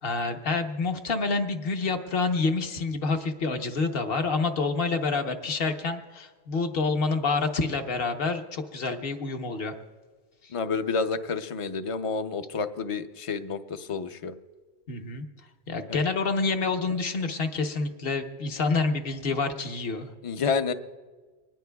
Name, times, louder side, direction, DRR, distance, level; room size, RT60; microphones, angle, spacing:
voice 1, 0.0-9.7 10.4-10.5 14.9-15.2 15.7-20.1, left 4 dB, 60° left, 6 dB, 1.2 m, -28 dB
voice 2, 10.5-14.3 15.9-16.0 20.2-20.7, left 5 dB, 35° left, 9 dB, 0.6 m, -29 dB
24.5 x 19.5 x 2.3 m, 1.4 s
omnidirectional pair, 1.1 m